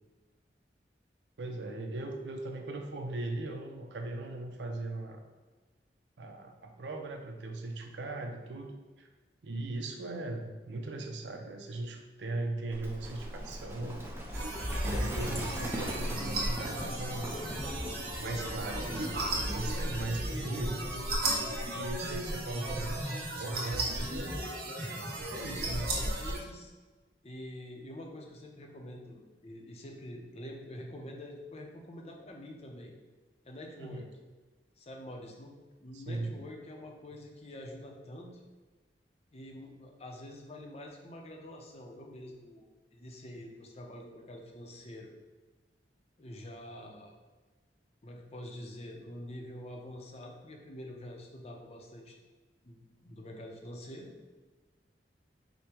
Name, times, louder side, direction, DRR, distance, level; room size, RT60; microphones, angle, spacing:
voice 1, 1.4-5.2 6.2-9.1 9.4-14.1 14.8-17.3 18.2-21.2 21.7-24.4 24.7-25.9 33.8-34.0 35.9-36.3, right 2 dB, 85° right, 4 dB, 0.6 m, -39 dB
Livestock farm animals working animals, 12.7-20.1, equal, 15° right, 0.5 m, -40 dB
sound 1, 14.3-26.4, right 1 dB, 60° right, 1.0 m, -35 dB
voice 2, 20.3-20.7 22.6-22.9 25.2-26.7 27.2-32.9 33.4-34.1 34.8-35.5 35.8-38.4 39.3-42.7 42.9-45.1 46.2-47.1 48.0-52.2 52.6-54.1, left 1 dB, 35° left, 1 dB, 0.6 m, -46 dB
5.1 x 2.1 x 4.4 m, 1.3 s
head